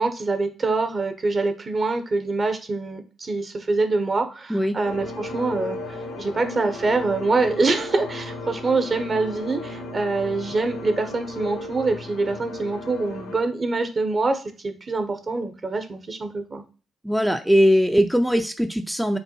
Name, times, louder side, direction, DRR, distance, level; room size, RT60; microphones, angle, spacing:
voice 1, 0.0-16.6, right 3 dB, 45° right, 7 dB, 0.8 m, -25 dB
sound 1, 4.8-13.4, left 2 dB, 80° left, 0.9 m, -35 dB
voice 2, 17.0-19.2, equal, ahead, 6 dB, 0.4 m, -20 dB
5.2 x 2.2 x 3.0 m, 0.36 s
hypercardioid pair, 45°, 0 cm